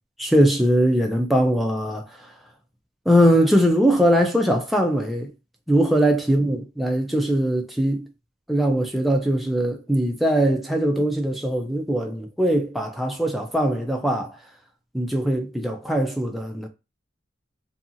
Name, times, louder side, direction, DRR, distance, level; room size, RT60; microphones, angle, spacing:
voice 1, 0.2-2.0 3.1-5.3 5.7-8.1 8.5-14.4 14.9-16.7, equal, ahead, 0.3 m, -21 dB
2.7 x 2.7 x 2.5 m
head